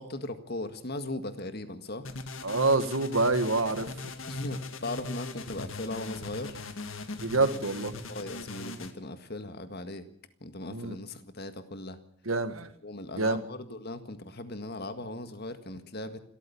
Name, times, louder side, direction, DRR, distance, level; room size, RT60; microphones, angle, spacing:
voice 1, 0.0-2.1 4.3-6.6 8.1-10.1 10.4-12.0 12.8-16.2, left 2 dB, 50° left, 9 dB, 1.8 m, -38 dB
sound 1, 2.0-8.9, left 3 dB, 70° left, 2.0 m, -40 dB
voice 2, 2.4-3.9 7.2-7.9 10.7-11.0 12.3-12.7 13.1-13.4, right 3 dB, 80° right, 10 dB, 1.8 m, -26 dB
28.0 x 13.5 x 7.1 m, 0.63 s
head